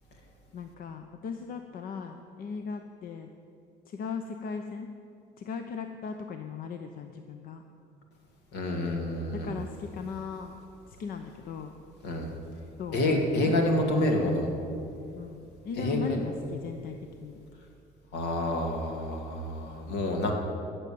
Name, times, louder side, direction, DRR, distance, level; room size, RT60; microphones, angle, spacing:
voice 1, 0.5-3.3 3.9-4.9 5.4-7.6 9.3-10.5 10.9-11.7 12.8-13.2 13.4-13.5 15.1-17.0 17.2-17.4, left 6 dB, 60° left, 6 dB, 0.8 m, -38 dB
voice 2, 8.5-9.6 12.0-12.3 12.9-14.5 15.8-16.2 18.1-20.3, left 1 dB, 80° left, 2 dB, 2.3 m, -28 dB
14.5 x 7.0 x 8.5 m, 2.6 s
cardioid pair, 110°, 17 cm